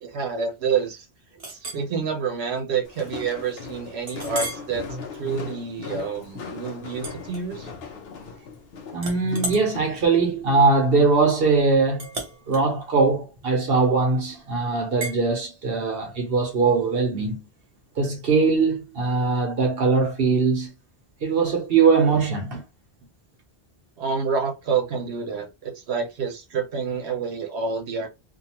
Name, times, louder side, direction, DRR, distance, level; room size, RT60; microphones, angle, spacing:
voice 1, 0.0-1.0 1.5-4.9 5.1-7.7 24.0-28.1, right 6 dB, 90° right, 1.1 m, -28 dB
Chink clink, 1.4-1.9 2.4-2.6 3.0-3.1 4.1-4.7 5.2-5.5 7.0-7.9 8.2-8.6 9.0-14.1 15.0-15.2, right 1 dB, 40° right, 0.8 m, -36 dB
Walk footsteps, 2.8-10.1, left 5 dB, 75° left, 0.9 m, -38 dB
voice 2, 8.9-12.1 12.5-17.5 18.0-20.7 21.2-22.6, right 4 dB, 65° right, 1.1 m, -21 dB
2.7 x 2.4 x 2.9 m
omnidirectional pair, 1.1 m